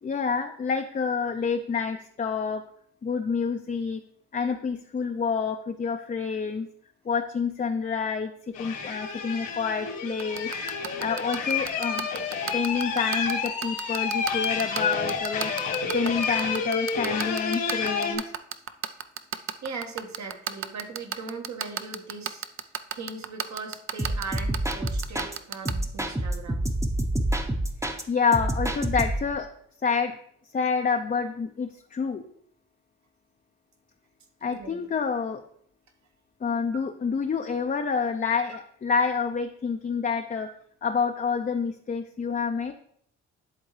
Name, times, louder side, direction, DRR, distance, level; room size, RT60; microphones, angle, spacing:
voice 1, 0.0-2.6 3.0-4.0 4.3-6.7 7.0-10.5 11.0-12.1 12.5-15.5 15.9-18.3 28.1-29.5 29.8-30.2 30.5-32.2 34.4-35.4 36.4-40.5 40.8-42.7, left 5 dB, 25° left, 4 dB, 0.5 m, -28 dB
sound 1, 8.5-18.2, left 5 dB, 85° left, 1.5 m, -30 dB
sound 2, 10.2-25.7, right 9 dB, 45° right, 0.5 m, -31 dB
voice 2, 19.6-22.4 22.9-26.7 34.4-34.8, right 4 dB, 60° right, 3 dB, 1.4 m, -39 dB
sound 3, 24.0-25.4 25.7-28.0 28.3-29.3, right 1 dB, 10° right, 0.8 m, -28 dB
10.5 x 3.7 x 3.2 m, 0.66 s
supercardioid pair, 60°, 32 cm